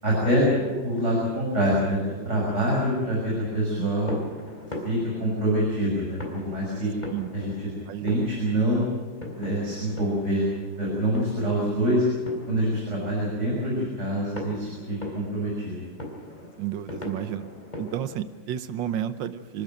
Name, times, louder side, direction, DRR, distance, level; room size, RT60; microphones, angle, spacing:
voice 1, 0.0-2.0 2.2-4.2 4.8-6.9 7.3-7.5 8.0-8.8 9.4-10.4 10.8-12.0 12.5-15.7, equal, 40° right, -4 dB, 6.5 m, -25 dB
sound 1, 3.0-18.2, left 1 dB, 20° left, 3.8 m, -41 dB
voice 2, 7.9-8.2 16.6-17.4 17.8-19.6, right 10 dB, 85° right, 12 dB, 1.6 m, -31 dB
27.0 x 13.0 x 9.1 m, 1.4 s
omnidirectional pair, 2.0 m